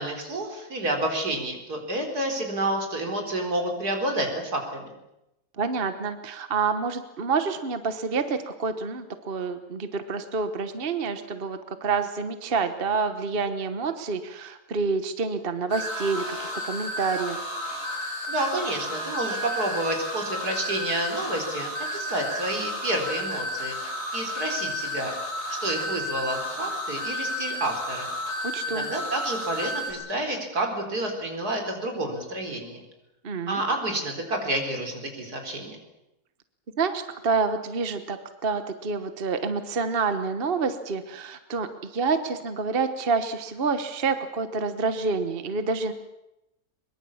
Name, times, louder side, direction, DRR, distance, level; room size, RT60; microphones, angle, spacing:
voice 1, 0.0-4.9 18.3-23.8 24.1-25.1 25.6-28.1 28.7-32.8 33.5-35.8, right 1 dB, 80° right, 3 dB, 4.7 m, -29 dB
voice 2, 5.6-17.4 28.5-28.9 33.2-33.6 36.8-45.9, right 4 dB, 40° right, 9 dB, 1.3 m, -28 dB
sound 1, 15.7-29.9, left 1 dB, 90° left, 8.0 m, -32 dB
22.5 x 22.5 x 7.2 m, 0.90 s
omnidirectional pair, 1.6 m